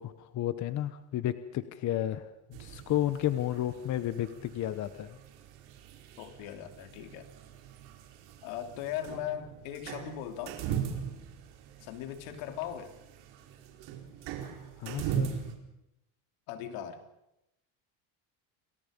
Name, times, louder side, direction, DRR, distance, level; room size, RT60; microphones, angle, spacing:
voice 1, 0.0-2.2 2.5-5.2 14.8-15.3, left 12 dB, 35° left, 12 dB, 1.0 m, -32 dB
sound 1, 2.5-15.6, right 8 dB, 65° right, 4.4 m, -40 dB
voice 2, 6.2-7.3 8.4-10.6 11.8-12.9 16.5-17.0, left 10 dB, 75° left, 6 dB, 3.1 m, -39 dB
28.5 x 21.5 x 5.3 m, 0.86 s
cardioid pair, 150°, 47 cm